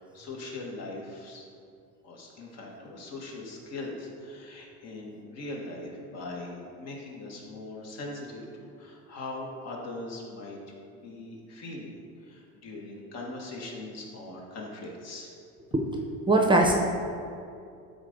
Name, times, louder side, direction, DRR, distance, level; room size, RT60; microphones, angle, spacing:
voice 1, 0.0-1.4 2.0-10.6 10.9-15.3, left 2 dB, 55° left, -1 dB, 1.9 m, -40 dB
voice 2, 16.3-16.7, right 2 dB, 15° right, 1 dB, 0.7 m, -20 dB
12.5 x 4.2 x 5.2 m, 2.4 s
cardioid pair, 155°, 31 cm